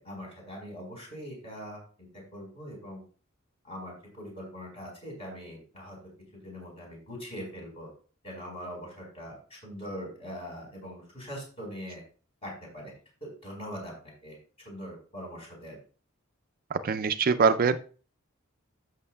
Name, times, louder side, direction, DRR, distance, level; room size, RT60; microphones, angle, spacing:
voice 1, 0.0-3.0 3.6-6.0 6.4-7.9 8.2-12.0 12.4-12.9 13.4-13.9 14.2-15.8, equal, 30° left, -1 dB, 4.5 m, -42 dB
voice 2, 16.7-17.8, right 5 dB, 45° right, 10 dB, 0.4 m, -23 dB
14.0 x 6.4 x 2.3 m, 0.39 s
head